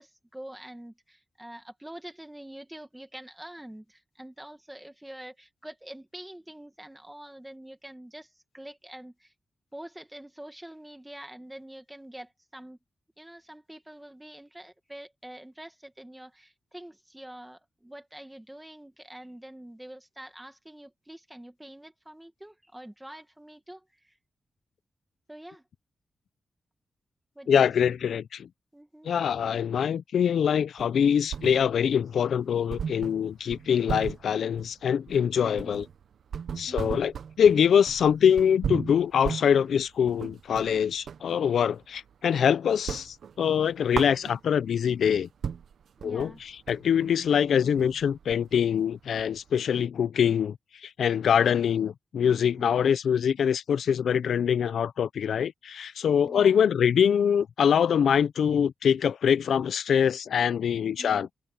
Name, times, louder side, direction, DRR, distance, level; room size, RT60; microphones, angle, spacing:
voice 1, 0.0-9.3 9.7-12.8 13.2-24.2 25.3-25.6 27.4-28.0 28.7-29.1 35.4-35.9 36.6-37.0 46.0-46.4 52.6-53.0 56.2-56.6 61.0-61.3, right 1 dB, 5° right, 1.9 m, -46 dB
voice 2, 27.5-28.5 29.0-35.8 36.6-37.1 37.4-45.3 46.0-46.3 46.7-50.6 50.8-61.3, left 8 dB, 90° left, 0.5 m, -24 dB
sound 1, 30.8-32.0 32.3-32.4 32.7-41.3 41.7-42.4 42.7-44.7 45.1-45.2 45.4-49.6, right 7 dB, 75° right, 0.9 m, -36 dB
wide cardioid pair, 165°, 0 cm